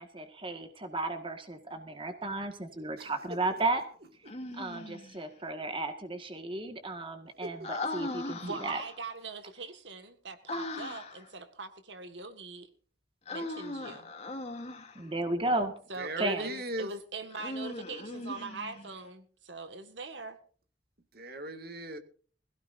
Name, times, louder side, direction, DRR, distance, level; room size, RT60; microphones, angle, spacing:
voice 1, 0.0-3.8 4.5-8.8 14.9-15.7 16.2-16.5, right 2 dB, 25° right, 1.7 m, -34 dB
voice 2, 3.0-3.4 7.4-7.7 8.0-8.1 16.0-16.9 21.1-22.0, right 1 dB, 55° right, 2.1 m, -38 dB
Human voice, 4.3-5.1 7.6-9.0 10.5-11.3 13.3-15.1 17.3-18.9, left 2 dB, 35° left, 2.7 m, -39 dB
voice 3, 8.4-12.7 13.3-14.1 15.9-20.4, right 3 dB, 70° right, 1.8 m, -42 dB
22.0 x 16.5 x 2.6 m
head